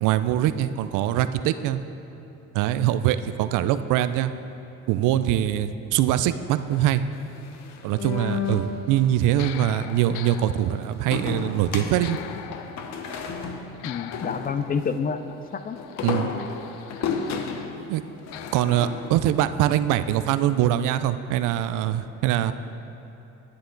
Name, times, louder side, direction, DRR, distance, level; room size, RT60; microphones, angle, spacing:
voice 1, 0.0-1.8 2.5-4.3 4.9-7.0 7.8-12.2 16.0-16.3 17.9-18.0 18.5-22.5, right 12 dB, 80° right, 12 dB, 0.5 m, -23 dB
sound 1, 6.7-8.7 9.0-17.8 18.3-19.7, left 10 dB, 90° left, 0.5 m, -44 dB
sound 2, 7.2-9.1 11.1-14.9 15.8-19.3, left 6 dB, 60° left, 0.9 m, -32 dB
voice 2, 13.8-15.8, left 5 dB, 30° left, 10 dB, 0.4 m, -28 dB
10.5 x 9.6 x 3.9 m, 3.0 s
cardioid pair, 105°, 31 cm